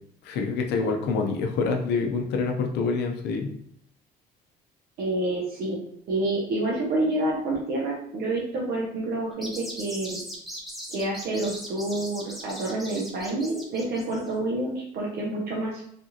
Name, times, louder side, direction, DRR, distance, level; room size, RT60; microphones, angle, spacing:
voice 1, 0.2-3.5, left 4 dB, 80° left, 3 dB, 0.6 m, -26 dB
voice 2, 5.0-10.2 10.9-15.8, right 2 dB, 70° right, -4 dB, 0.7 m, -28 dB
sound 1, 9.3-14.3, equal, ahead, 0.9 m, -39 dB
3.4 x 2.4 x 2.7 m, 0.69 s
cardioid pair, 110°, 17 cm